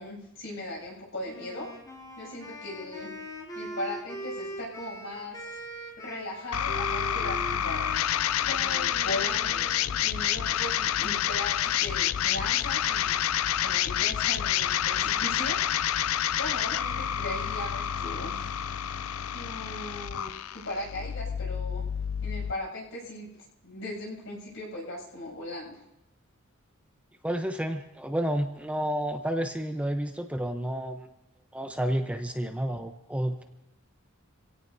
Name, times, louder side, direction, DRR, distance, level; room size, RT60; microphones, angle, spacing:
voice 1, 0.0-1.7 2.2-3.1 3.5-5.4 6.0-7.9 8.4-13.3 13.6-15.6 16.3-18.5 19.3-21.9 22.2-23.3 23.6-25.8, left 1 dB, 65° left, -2 dB, 7.7 m, -38 dB
Wind instrument woodwind instrument, 1.2-10.0, right 1 dB, 20° left, 4.1 m, -41 dB
sound 1, 6.5-22.5, left 10 dB, 90° left, 0.4 m, -28 dB
voice 2, 27.2-31.1 31.5-33.4, right 1 dB, 5° right, 5 dB, 0.8 m, -30 dB
26.5 x 17.0 x 2.7 m, 0.88 s
head